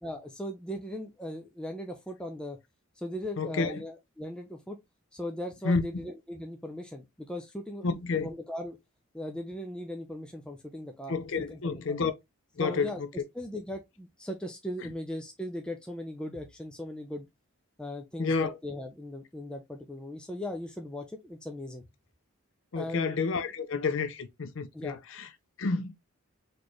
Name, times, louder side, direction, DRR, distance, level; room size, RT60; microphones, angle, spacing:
voice 1, 0.0-2.6 3.0-4.8 5.1-7.9 8.2-8.8 9.1-12.0 12.6-13.0 13.3-17.3 17.8-21.8 22.7-23.1 24.7-25.0, left 1 dB, 5° left, 0.4 m, -38 dB
voice 2, 3.4-3.7 5.7-5.8 7.8-8.3 11.1-12.1 12.6-12.9 18.2-18.5 22.7-25.3 25.6-25.9, left 4 dB, 55° left, 0.5 m, -29 dB
4.2 x 3.2 x 3.0 m
head